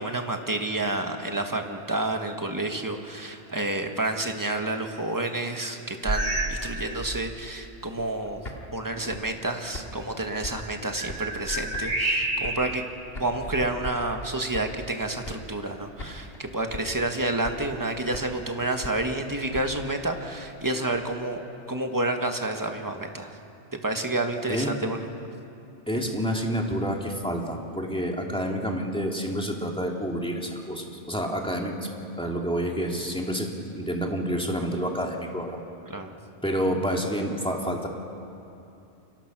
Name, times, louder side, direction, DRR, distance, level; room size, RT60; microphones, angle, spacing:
voice 1, 0.0-8.4 8.7-12.8 13.2-23.3 23.7-25.0 35.9-36.1, right 2 dB, 15° right, 4 dB, 1.6 m, -29 dB
sound 1, 6.0-6.7 7.0-7.3 8.0-8.1 10.5-12.8 13.4-14.4, right 1 dB, 55° right, 2.5 m, -30 dB
sound 2, 8.2-11.4 11.7-12.9 13.1-14.9 15.2-15.7 16.0-16.4 16.7-17.1 17.4-18.5 18.8-21.0, left 1 dB, 60° left, 2.5 m, -41 dB
voice 2, 25.9-31.8 32.2-35.6 36.4-37.9, equal, 5° left, 0 dB, 2.6 m, -28 dB
29.0 x 23.5 x 6.1 m, 2.7 s
omnidirectional pair, 1.2 m